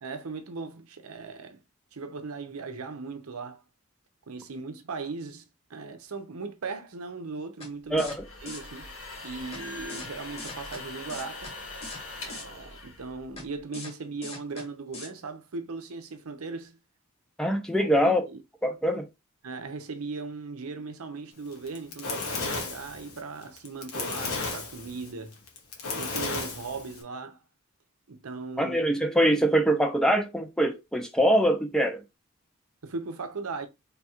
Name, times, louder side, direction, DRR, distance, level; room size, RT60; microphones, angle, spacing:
voice 1, 0.0-1.6 1.9-3.6 4.3-5.4 5.7-8.1 8.4-8.9 9.2-11.5 12.2-16.8 17.8-18.4 19.4-25.4 25.9-27.4 28.1-28.8 32.8-33.7, right 4 dB, 90° right, 0.7 m, -38 dB
sound 1, 7.6-7.7 8.0-8.2 8.5-8.6 9.5-9.6 9.9-10.1 10.4-10.8 11.1-11.5 11.8-12.0 12.3-12.4 13.4-13.5 13.7-13.9 14.2-14.6 14.9-15.1, left 3 dB, 25° left, 1.0 m, -40 dB
sound 2, 7.9-13.6, left 2 dB, 70° left, 2.2 m, -42 dB
voice 2, 7.9-8.2 17.4-18.2 18.6-19.0 28.6-32.0, equal, 5° left, 0.6 m, -23 dB
Fire, 21.5-27.0, left 4 dB, 90° left, 1.2 m, -34 dB
3.5 x 2.4 x 4.3 m
head